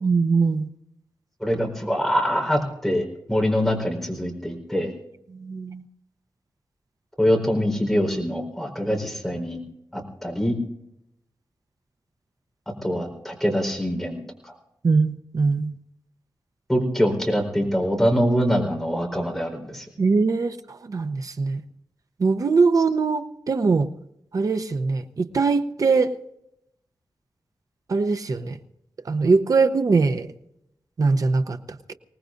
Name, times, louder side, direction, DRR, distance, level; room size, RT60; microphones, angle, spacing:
voice 1, 0.0-0.7 5.3-5.8 14.8-15.7 20.0-21.6 22.2-23.9 24.3-26.1 27.9-28.6 29.1-30.3 31.0-31.6, right 4 dB, 50° right, 9 dB, 0.8 m, -21 dB
voice 2, 1.4-4.9 7.2-9.6 9.9-10.5 12.8-14.2 14.4-14.5 16.7-19.9, equal, 5° left, 1 dB, 4.4 m, -24 dB
25.0 x 19.0 x 2.6 m, 0.81 s
wide cardioid pair, 125°, 7 cm